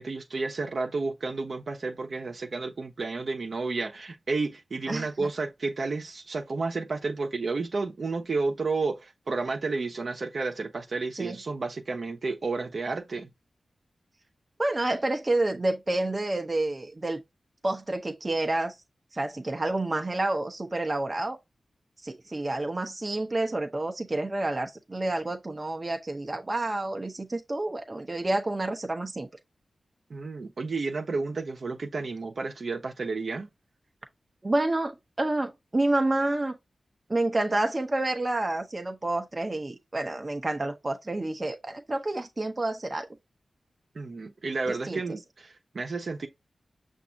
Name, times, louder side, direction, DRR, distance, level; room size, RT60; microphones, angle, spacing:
voice 1, 0.0-13.3 30.1-33.5 43.9-46.3, right 3 dB, 65° right, 0.9 m, -31 dB
voice 2, 4.9-5.3 11.1-11.4 14.6-17.2 17.6-18.7 19.1-21.4 22.0-29.3 34.4-36.6 37.1-43.1 44.7-45.0, right 2 dB, 35° right, 0.8 m, -29 dB
6.0 x 2.6 x 2.7 m
cardioid pair, 55°, 0 cm